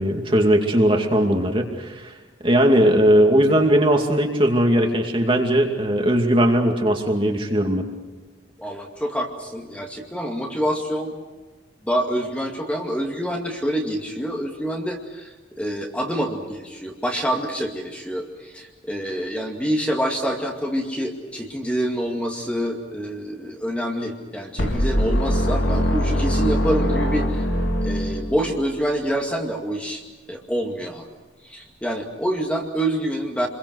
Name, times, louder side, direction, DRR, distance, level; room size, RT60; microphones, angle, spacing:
voice 1, 0.0-2.1 2.4-7.9, right 1 dB, 25° right, 2 dB, 2.5 m, -19 dB
voice 2, 8.6-11.2 11.8-27.5 27.8-30.0 30.3-31.1 31.4-33.5, equal, 5° left, 1 dB, 2.2 m, -26 dB
sound 1, 24.6-28.6, equal, 90° left, 3.6 m, -22 dB
29.0 x 22.5 x 6.5 m, 1.3 s
head